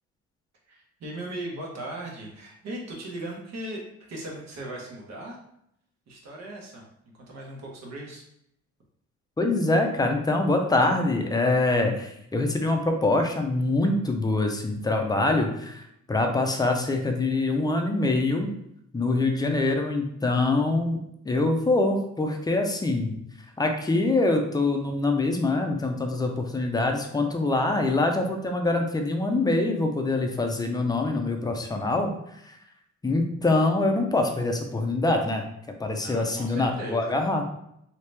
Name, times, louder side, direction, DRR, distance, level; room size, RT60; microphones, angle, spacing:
voice 1, 0.7-3.8 4.1-5.4 6.1-6.8 7.2-8.2 36.0-37.2, right 1 dB, 60° right, -1 dB, 1.2 m, -38 dB
voice 2, 9.4-18.5 18.9-21.0 21.2-23.1 23.6-32.6 33.0-35.4 35.8-37.4, left 2 dB, 15° left, 3 dB, 0.5 m, -24 dB
3.0 x 2.8 x 3.3 m, 0.76 s
cardioid pair, 110°, 29 cm